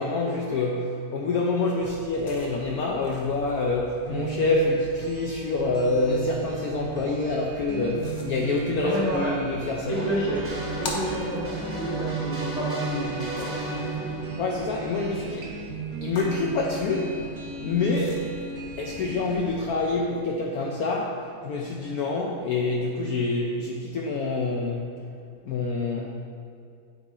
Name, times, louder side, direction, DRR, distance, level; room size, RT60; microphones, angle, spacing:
voice 1, 0.0-10.0 14.4-15.5 16.0-17.2 17.6-18.3 18.8-24.9 25.4-26.1, left 3 dB, 80° left, -1 dB, 0.8 m, -26 dB
sound 1, 1.8-19.9, left 2 dB, 55° left, 0.9 m, -44 dB
sound 2, 4.1-19.4, right 4 dB, 60° right, 0.7 m, -36 dB
voice 2, 8.8-9.4 9.9-14.1, right 1 dB, 80° right, -7 dB, 0.3 m, -30 dB
sound 3, 9.9-15.6, right 1 dB, 10° right, 0.6 m, -35 dB
8.8 x 4.2 x 3.7 m, 2.3 s
omnidirectional pair, 2.1 m